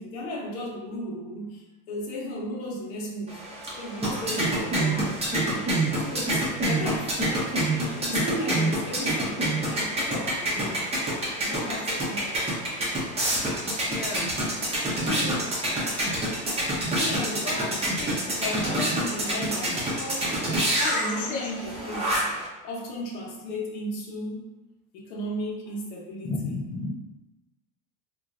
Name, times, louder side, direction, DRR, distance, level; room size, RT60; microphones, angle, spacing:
voice 1, 0.0-3.4 3.8-5.7 6.0-7.6 7.9-10.9 11.4-12.5 15.0-15.7 16.8-17.5 18.0-20.4 20.8-24.6 24.9-26.5, left 1 dB, 85° left, -3 dB, 1.0 m, -35 dB
sound 1, 3.3-22.5, right 1 dB, 15° right, 0.7 m, -27 dB
voice 2, 13.9-14.4 17.4-17.7 19.3-19.6 20.8-21.5 26.2-26.9, left 3 dB, 20° left, 0 dB, 0.3 m, -33 dB
3.0 x 2.5 x 2.4 m, 1.1 s
supercardioid pair, 130°, 41 cm